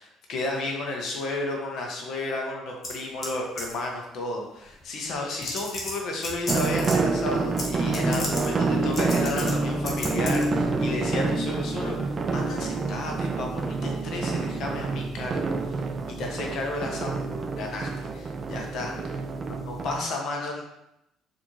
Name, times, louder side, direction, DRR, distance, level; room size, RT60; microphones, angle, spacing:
voice 1, 0.0-12.0 12.3-17.2 17.6-18.9 19.7-20.6, left 2 dB, 60° left, 1 dB, 0.8 m, -32 dB
sound 1, 2.8-3.3 3.6-3.8 4.8-4.9 5.4-7.0 7.6-7.7 7.9-8.5 8.9-9.5 9.8-10.4, left 2 dB, 40° left, 1.1 m, -33 dB
sound 2, 6.5-20.0, right 3 dB, 35° right, 0.3 m, -27 dB
4.2 x 2.6 x 2.9 m, 0.87 s
hypercardioid pair, 55°, 0 cm